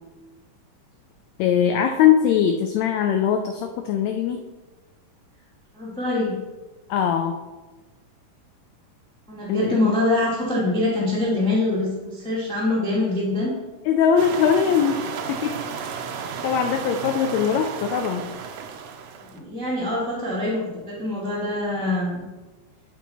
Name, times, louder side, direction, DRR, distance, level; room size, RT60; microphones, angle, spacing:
voice 1, 1.4-4.4 6.9-7.4 9.5-9.9 13.8-15.6 16.4-18.4, left 8 dB, 80° left, 5 dB, 1.6 m, -21 dB
voice 2, 5.7-6.4 9.3-13.5 19.3-22.2, left 2 dB, 5° left, -6 dB, 0.8 m, -24 dB
sound 1, 14.2-19.4, right 6 dB, 80° right, 1.5 m, -33 dB
10.0 x 4.5 x 4.1 m, 1.2 s
omnidirectional pair, 3.7 m